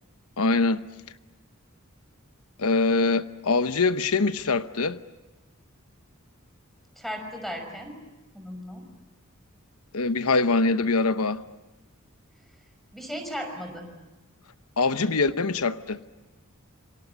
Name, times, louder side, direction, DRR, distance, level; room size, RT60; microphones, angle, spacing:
voice 1, 0.4-0.8 2.6-5.0 9.9-11.4 14.8-16.0, left 3 dB, 85° left, 1.0 m, -23 dB
voice 2, 7.0-8.0 8.3-8.9 12.9-13.9, equal, ahead, 5.7 m, -36 dB
27.0 x 25.5 x 8.3 m
head